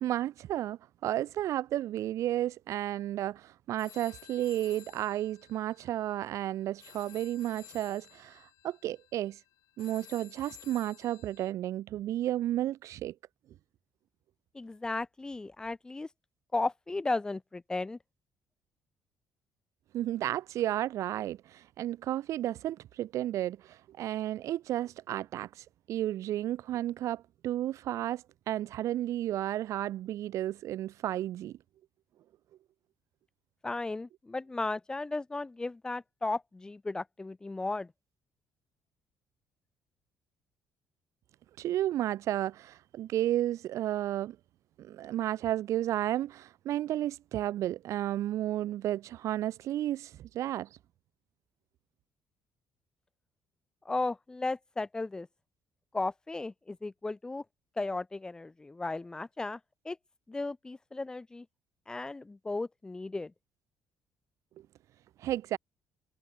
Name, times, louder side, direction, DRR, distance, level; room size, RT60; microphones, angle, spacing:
voice 1, 0.0-9.4 9.8-13.1 19.9-31.6 41.6-44.4 44.8-50.7 65.2-65.6, right 13 dB, 60° right, 1.1 m, -32 dB
sound 1, 3.8-11.5, left 17 dB, 90° left, 5.5 m, -54 dB
voice 2, 14.5-16.1 16.5-18.0 33.6-37.9 53.9-55.3 55.9-57.4 57.8-59.6 59.8-60.0 60.3-61.5 61.9-63.3, left 2 dB, 10° left, 2.2 m, -35 dB
cardioid pair, 155°, 6 cm